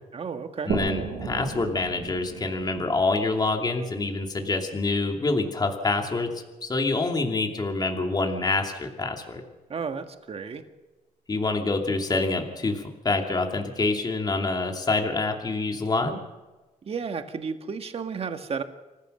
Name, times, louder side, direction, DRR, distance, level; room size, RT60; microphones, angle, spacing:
voice 1, 0.1-0.7 9.7-10.6 16.8-18.6, right 5 dB, 45° right, 7 dB, 1.7 m, -32 dB
voice 2, 0.7-6.3 6.6-9.4 11.3-16.2, left 3 dB, 30° left, 3 dB, 2.7 m, -26 dB
sound 1, 0.7-4.2, right 5 dB, 80° right, 6.4 m, -34 dB
27.0 x 15.0 x 6.7 m, 1.2 s
cardioid pair, 100°, 14 cm